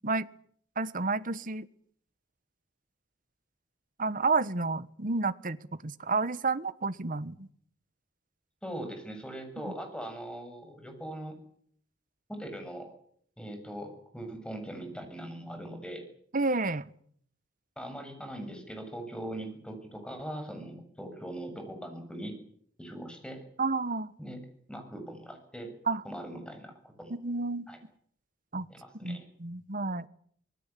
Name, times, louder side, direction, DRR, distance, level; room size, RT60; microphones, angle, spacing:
voice 1, 0.8-1.7 4.0-5.6 5.8-7.5 16.3-16.9 23.6-24.1 25.9-26.0 27.1-27.7 28.5-28.6 29.0-30.1, right 3 dB, 45° right, 14 dB, 1.2 m, -30 dB
voice 2, 8.6-11.4 12.3-12.9 13.4-16.0 17.8-22.3 22.8-23.4 24.2-24.4 24.7-25.8 26.0-27.2 27.7-27.8 28.7-29.3, right 1 dB, 5° left, 6 dB, 7.1 m, -41 dB
26.5 x 19.5 x 8.4 m, 0.64 s
head